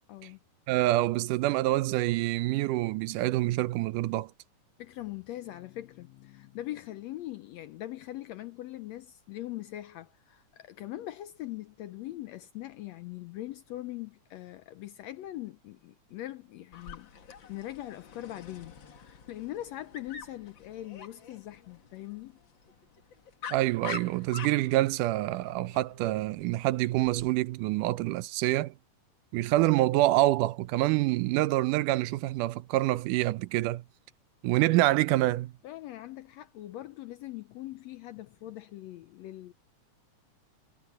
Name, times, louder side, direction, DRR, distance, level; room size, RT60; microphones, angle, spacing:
voice 1, 0.1-0.4 4.8-17.1 17.5-22.4 35.6-39.5, left 15 dB, 80° left, 1.6 m, -41 dB
voice 2, 0.7-4.3 23.5-28.7 29.3-33.8 34.4-35.5, right 17 dB, 85° right, 2.2 m, -26 dB
Dog, 16.7-27.3, left 6 dB, 45° left, 1.9 m, -46 dB
omnidirectional pair, 3.6 m